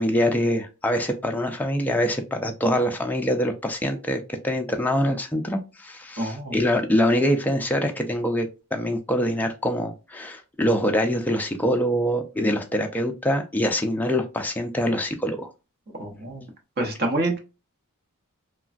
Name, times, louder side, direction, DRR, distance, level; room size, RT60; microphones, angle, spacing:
voice 1, 0.0-15.5, equal, 5° left, 0.3 m, -24 dB
voice 2, 6.2-6.6 16.0-16.5 16.8-17.4, right 2 dB, 45° right, 0.8 m, -27 dB
3.2 x 2.2 x 2.4 m
head